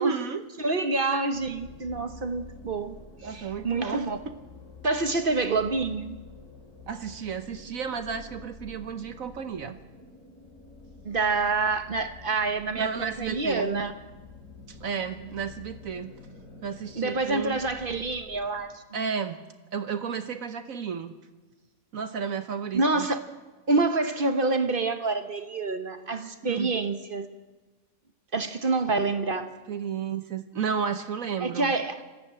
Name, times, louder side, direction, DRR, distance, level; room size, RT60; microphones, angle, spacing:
voice 1, 0.0-0.4 3.2-4.4 6.9-9.8 12.7-13.7 14.7-16.1 16.6-17.6 18.9-19.4 19.7-21.1 21.9-23.1 26.4-26.7 29.7-31.8, right 6 dB, 60° right, 9 dB, 1.3 m, -32 dB
voice 2, 0.6-3.0 3.2-4.2 4.8-6.2 11.0-13.9 17.0-19.1 22.7-23.2 23.7-27.3 28.3-29.5 31.4-32.0, right 3 dB, 40° right, 8 dB, 1.0 m, -27 dB
sound 1, 1.3-18.8, left 3 dB, 70° left, 4.9 m, -48 dB
20.5 x 14.5 x 8.8 m, 1.2 s
omnidirectional pair, 1.7 m